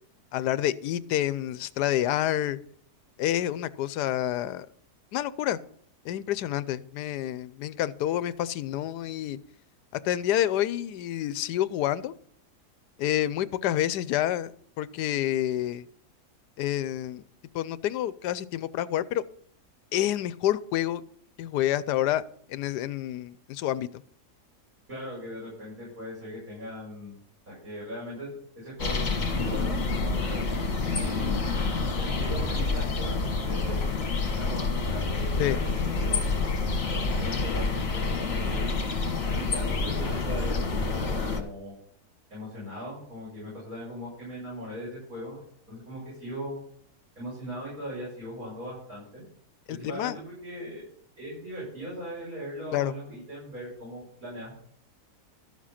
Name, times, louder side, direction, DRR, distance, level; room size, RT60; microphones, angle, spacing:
voice 1, 0.3-2.6 3.2-4.7 5.1-5.6 6.0-9.4 10.0-12.1 13.0-14.5 14.8-15.8 16.6-17.2 17.5-19.2 19.9-21.0 21.4-22.2 22.5-23.9 35.4-35.6 49.7-50.2 52.7-52.9, left 12 dB, 85° left, 17 dB, 1.2 m, -28 dB
voice 2, 24.9-27.1 27.5-28.3 28.6-31.4 32.0-33.8 34.4-36.1 36.8-38.7 39.3-41.7 42.3-45.4 45.7-46.6 47.2-49.2 49.7-50.9 51.2-54.6, equal, 60° right, -7 dB, 7.3 m, -39 dB
sound 1, 28.8-41.4, left 3 dB, 55° left, 2.0 m, -28 dB
13.0 x 7.4 x 5.7 m, 0.63 s
omnidirectional pair, 1.7 m